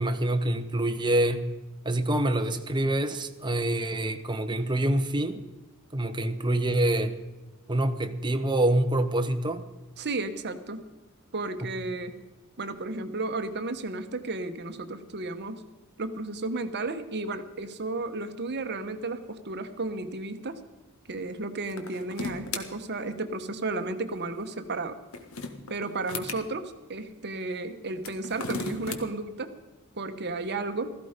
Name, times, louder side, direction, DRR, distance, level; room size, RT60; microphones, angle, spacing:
voice 1, 0.0-1.5 1.8-5.4 5.9-7.1 7.7-9.7 11.6-11.7, right 1 dB, 20° right, 8 dB, 1.0 m, -26 dB
voice 2, 10.0-10.8 11.3-12.1 12.6-15.6 16.0-20.6 21.1-25.0 25.7-29.5 30.0-30.9, right 2 dB, 50° right, 9 dB, 1.1 m, -33 dB
sound 1, 21.6-22.6 24.9-26.4 27.9-29.0, left 4 dB, 70° left, 1.6 m, -35 dB
16.0 x 14.5 x 5.2 m, 1.1 s
head